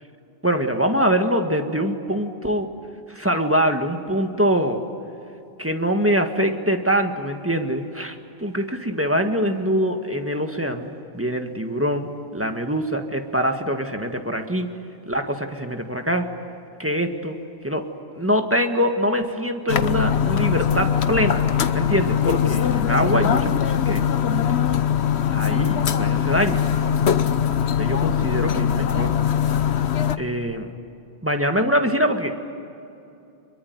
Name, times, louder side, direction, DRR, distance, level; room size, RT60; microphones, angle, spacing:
voice 1, 0.4-2.7 3.1-4.8 5.6-14.7 15.1-16.3 16.8-17.4 17.6-17.8 18.1-21.4 21.7-24.0 25.3-26.6 27.8-29.1 30.2-30.7 31.2-32.3, equal, 10° right, 5 dB, 1.7 m, -24 dB
sound 1, 19.7-30.2, left 8 dB, 85° left, 1.2 m, -21 dB
26.0 x 23.0 x 9.5 m, 2.8 s
omnidirectional pair, 1.1 m